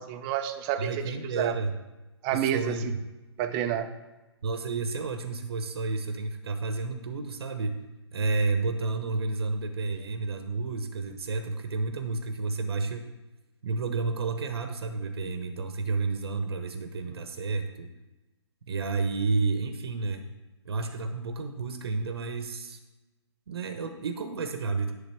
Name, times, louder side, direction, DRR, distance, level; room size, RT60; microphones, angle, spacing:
voice 1, 0.0-0.9 1.3-1.5 2.2-3.0 3.4-3.9, right 10 dB, 25° right, 7 dB, 0.7 m, -29 dB
voice 2, 0.8-1.7 2.3-3.0 4.4-7.8 8.1-13.1 13.6-17.9 18.7-20.2 20.6-22.8 23.5-24.9, right 3 dB, 60° right, 7 dB, 1.0 m, -31 dB
11.0 x 3.9 x 6.9 m, 1.1 s
figure-of-eight pair, 135°, 15 cm